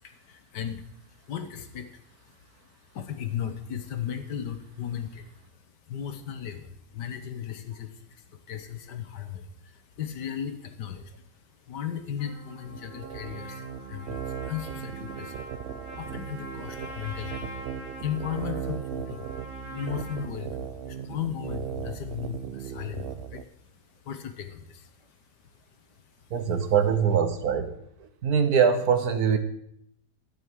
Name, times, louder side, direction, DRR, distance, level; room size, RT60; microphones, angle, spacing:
voice 1, 0.0-23.5 24.0-25.2 25.9-26.3, left 9 dB, 85° left, 8 dB, 1.8 m, -37 dB
Trumpet, 12.2-20.2, equal, 10° left, 5.0 m, -44 dB
sound 1, 12.7-23.4, right 8 dB, 90° right, 0.5 m, -37 dB
voice 2, 26.3-27.7 28.2-29.4, right 7 dB, 65° right, 9 dB, 1.6 m, -22 dB
12.5 x 6.4 x 8.0 m, 0.72 s
omnidirectional pair, 1.8 m